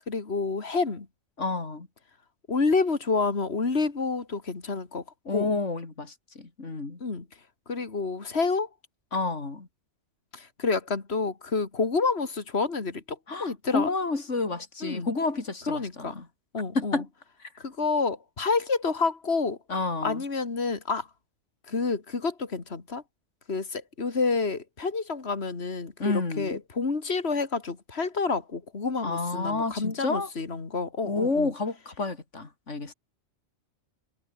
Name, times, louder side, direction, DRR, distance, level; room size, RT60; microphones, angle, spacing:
voice 1, 0.1-1.1 2.5-5.0 5.3-5.5 7.0-7.3 7.7-8.7 10.3-13.9 14.8-15.1 15.7-16.1 16.5-17.0 17.6-19.6 20.0-21.1 21.7-23.0 23.5-31.5, left 4 dB, 60° left, 2.7 m, -28 dB
voice 2, 1.4-1.9 5.3-7.0 9.1-9.7 13.3-16.3 16.7-17.0 17.4-17.5 19.7-20.2 26.0-26.6 29.0-30.3 31.0-32.9, left 3 dB, 90° left, 3.5 m, -30 dB
omnidirectional pair, 1.2 m